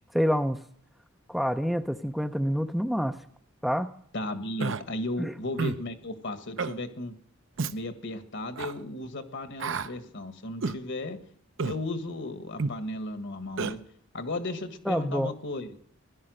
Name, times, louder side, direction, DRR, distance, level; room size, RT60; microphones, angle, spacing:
voice 1, 0.1-0.6 1.3-3.2 3.6-3.9 5.2-5.3 14.9-15.3, equal, ahead, 7 dB, 0.5 m, -27 dB
voice 2, 4.1-7.1 7.7-11.2 11.6-13.8 14.1-15.8, left 2 dB, 55° left, 9 dB, 1.6 m, -35 dB
Human voice, 4.6-4.8 5.6-5.8 6.6-6.8 7.6-7.8 8.6-8.7 9.6-9.9 10.6-10.8 11.6-11.8 12.6-12.8 13.6-13.7, right 4 dB, 60° right, 0.7 m, -30 dB
16.5 x 11.5 x 6.4 m, 0.64 s
head